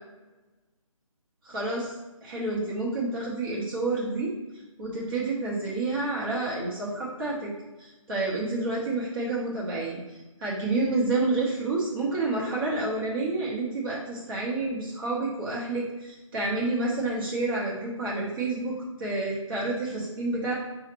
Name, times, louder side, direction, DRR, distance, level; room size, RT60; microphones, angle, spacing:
voice 1, 1.4-1.9 2.2-4.3 4.8-7.5 7.8-10.0 10.4-20.5, right 2 dB, 40° right, -7 dB, 1.2 m, -29 dB
5.5 x 2.4 x 3.1 m, 1.1 s
figure-of-eight pair, 155°, 18 cm